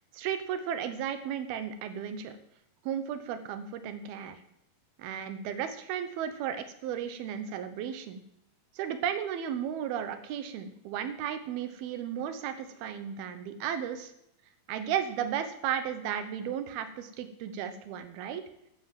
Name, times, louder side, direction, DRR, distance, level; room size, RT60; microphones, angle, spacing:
voice 1, 0.1-2.4 2.8-4.4 5.0-8.2 8.7-14.1 14.7-18.4, right 9 dB, 80° right, 10 dB, 3.0 m, -34 dB
13.0 x 10.0 x 7.7 m, 0.80 s
omnidirectional pair, 4.4 m